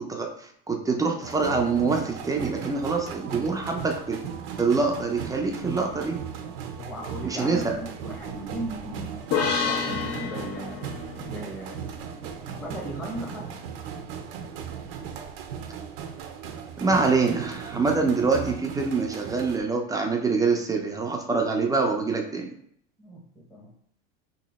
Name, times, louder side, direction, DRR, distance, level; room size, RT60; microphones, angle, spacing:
voice 1, 0.0-4.2 4.6-6.2 7.2-7.8 16.8-22.5, right 4 dB, 10° right, 2 dB, 0.4 m, -25 dB
sound 1, 1.2-19.6, right 7 dB, 75° right, 0.7 m, -37 dB
voice 2, 6.8-9.2 9.6-10.8 11.1-11.8 12.5-13.4 23.0-23.7, right 1 dB, 5° left, -3 dB, 0.9 m, -37 dB
sound 2, 9.3-12.8, left 6 dB, 60° left, 1.0 m, -30 dB
3.0 x 2.7 x 4.0 m, 0.68 s
supercardioid pair, 120°, 29 cm